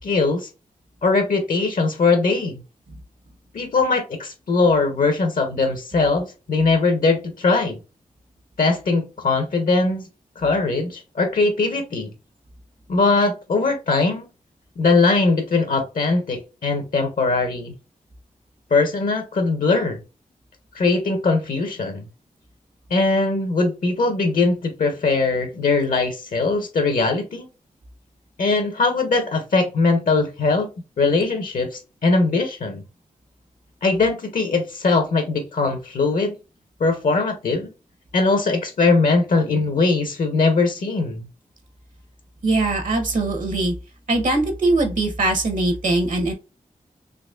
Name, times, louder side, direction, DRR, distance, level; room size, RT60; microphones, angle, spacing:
voice 1, 0.0-0.5 1.0-2.6 3.5-7.7 8.6-10.1 10.4-12.1 12.9-14.3 14.8-17.7 18.7-20.0 20.7-22.0 22.9-27.5 28.4-30.7 31.0-32.8 33.8-36.3 36.8-37.7 38.1-41.3, left 3 dB, 70° left, 5 dB, 1.0 m, -20 dB
voice 2, 42.4-43.7 44.1-46.3, right 2 dB, 65° right, 6 dB, 0.9 m, -21 dB
3.9 x 3.0 x 2.4 m, 0.29 s
wide cardioid pair, 120°, 15 cm